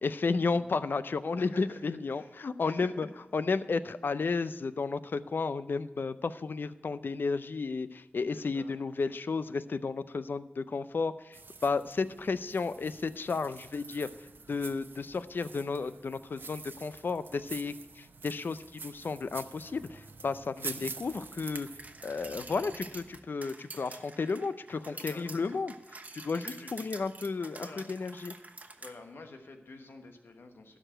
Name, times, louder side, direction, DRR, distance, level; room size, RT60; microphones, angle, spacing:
voice 1, 0.0-3.1 3.3-14.1 14.5-21.7 22.0-25.7 26.1-28.3, left 4 dB, 70° left, 13 dB, 0.5 m, -33 dB
voice 2, 1.4-2.3 2.7-3.1 8.3-8.8 20.6-20.9 24.9-25.7 26.3-27.0 27.6-27.9 28.8-30.8, left 3 dB, 85° left, 5 dB, 1.2 m, -49 dB
sound 1, 11.3-23.2, right 4 dB, 75° right, 0.8 m, -47 dB
sound 2, 21.6-28.9, right 2 dB, 45° right, 1.0 m, -47 dB
12.5 x 5.0 x 8.8 m, 1.0 s
cardioid pair, 50°, 4 cm